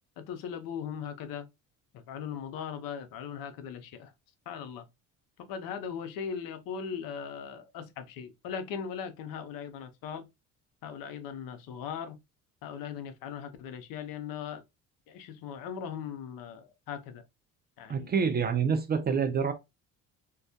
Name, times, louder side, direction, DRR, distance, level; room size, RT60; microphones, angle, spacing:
voice 1, 0.2-1.5 1.9-4.1 4.5-4.8 5.4-10.3 10.8-12.2 12.6-14.6 15.1-17.2 17.8-18.2 18.6-18.8, left 7 dB, 70° left, 0.6 m, -39 dB
voice 2, 17.9-19.5, right 6 dB, 30° right, 0.4 m, -27 dB
2.2 x 2.1 x 2.6 m
supercardioid pair, 85°, 36 cm